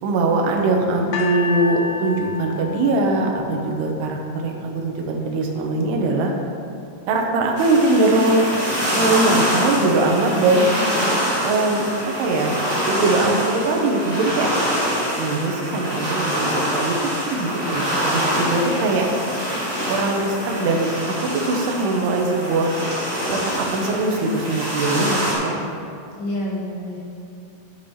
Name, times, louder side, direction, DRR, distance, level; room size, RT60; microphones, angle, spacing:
voice 1, 0.0-6.3 7.1-8.4 9.0-10.7 11.4-14.5 15.2-17.0 17.3-19.1 19.9-20.9 21.3-22.7 23.3-25.5, right 2 dB, 80° right, 1 dB, 2.8 m, -21 dB
sound 1, 1.1-4.3 5.1-5.2, left 4 dB, 80° left, 2.0 m, -30 dB
sound 2, 7.5-25.3, equal, 50° right, 0.6 m, -25 dB
voice 2, 26.2-27.0, left 1 dB, 60° left, -7 dB, 3.2 m, -30 dB
9.6 x 8.9 x 2.9 m, 2.5 s
omnidirectional pair, 4.8 m